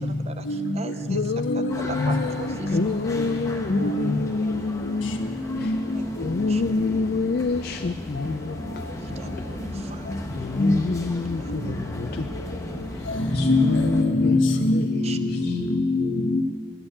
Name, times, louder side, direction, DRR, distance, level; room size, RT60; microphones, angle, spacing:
voice 1, 0.0-1.2 1.5-2.8 5.9-6.6 9.0-10.1 11.4-11.5 15.0-15.2, right 3 dB, 30° right, 9 dB, 0.6 m, -39 dB
voice 2, 1.1-5.2 5.6-5.7 6.2-9.2 10.3-12.3 13.3-14.4 14.7-15.6, left 4 dB, 50° left, 9 dB, 0.4 m, -28 dB
sound 1, 1.7-14.0, left 1 dB, 15° left, 1.0 m, -36 dB
voice 3, 13.4-16.4, left 2 dB, 80° left, 5 dB, 1.3 m, -22 dB
13.0 x 9.0 x 8.4 m, 2.1 s
head